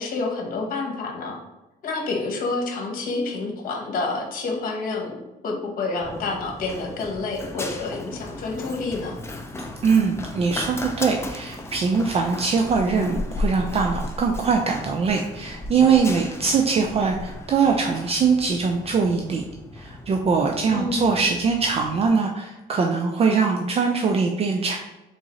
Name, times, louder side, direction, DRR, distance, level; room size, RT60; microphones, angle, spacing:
voice 1, 0.0-1.4 1.8-9.2 20.7-21.1, left 3 dB, 55° left, 1 dB, 1.2 m, -28 dB
Run, 6.0-22.1, left 2 dB, 15° left, 0.5 m, -35 dB
voice 2, 9.8-19.4 19.7-24.8, right 5 dB, 35° right, 2 dB, 0.5 m, -22 dB
3.9 x 3.6 x 3.1 m, 1.0 s
cardioid pair, 110°, 17 cm